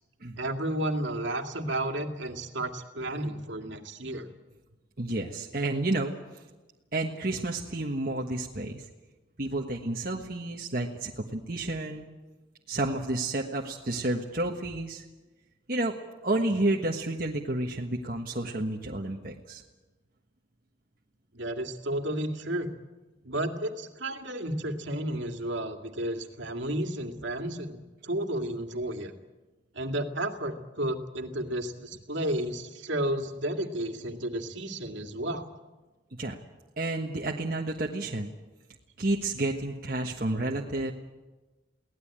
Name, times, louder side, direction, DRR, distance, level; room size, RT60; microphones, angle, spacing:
voice 1, 0.4-4.3 21.3-22.7 23.2-29.1 29.7-35.5, right 1 dB, 70° right, 4 dB, 2.2 m, -32 dB
voice 2, 5.0-6.4 6.9-8.8 9.4-12.1 12.7-15.0 15.7-16.0 16.2-19.6 36.2-36.4 36.8-38.3 39.0-40.9, right 2 dB, 45° right, 0 dB, 1.4 m, -30 dB
23.0 x 18.0 x 8.9 m, 1.2 s
head